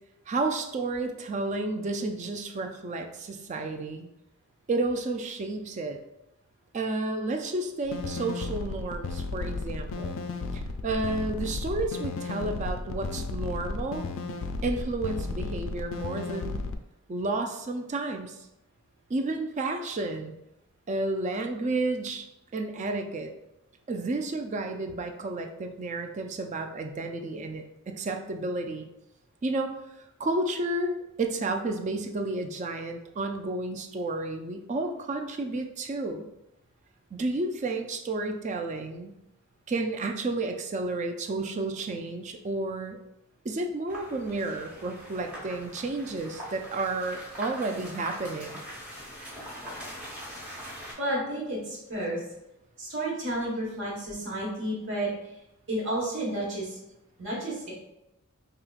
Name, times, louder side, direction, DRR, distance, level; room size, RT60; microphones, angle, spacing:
voice 1, 0.3-4.1 4.7-6.0 6.7-10.2 10.8-14.0 14.6-16.6 17.1-18.4 19.1-20.3 20.9-22.2 22.5-23.3 23.9-28.9 29.4-29.7 30.2-36.3 37.1-39.1 39.7-43.0 43.4-48.6, right 2 dB, 35° right, 4 dB, 0.3 m, -31 dB
sound 1, 7.8-16.7, left 3 dB, 60° left, 0.3 m, -34 dB
sound 2, 43.9-50.9, equal, 5° right, 1.0 m, -42 dB
voice 2, 51.0-52.2 52.8-55.1 55.7-56.8 57.2-57.7, right 1 dB, 55° right, -4 dB, 1.3 m, -31 dB
4.8 x 2.8 x 2.3 m, 0.89 s
head